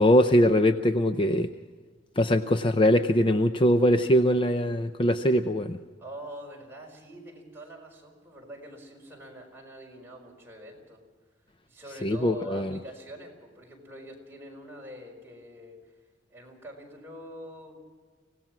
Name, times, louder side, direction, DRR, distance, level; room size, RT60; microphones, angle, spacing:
voice 1, 0.0-1.5 2.2-5.8 12.0-12.8, equal, 30° left, 9 dB, 0.6 m, -22 dB
voice 2, 6.0-11.0 11.6-16.0 16.3-17.7, right 1 dB, 10° right, -2 dB, 4.9 m, -45 dB
25.5 x 17.5 x 6.1 m, 1.5 s
head